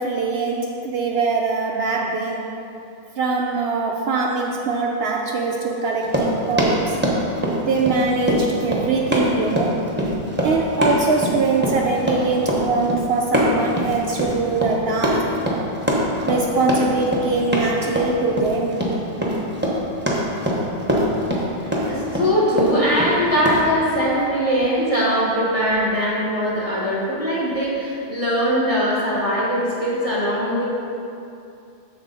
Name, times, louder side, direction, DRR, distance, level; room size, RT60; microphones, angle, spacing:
voice 1, 0.0-2.5 3.2-7.0 7.7-9.8 10.4-15.3 16.3-18.8, right 3 dB, 65° right, 1 dB, 0.8 m, -22 dB
Run, 6.0-23.6, equal, 10° right, 1.2 m, -23 dB
voice 2, 21.9-30.6, equal, 30° left, -8 dB, 2.1 m, -21 dB
13.0 x 4.4 x 4.1 m, 2.6 s
omnidirectional pair, 1.2 m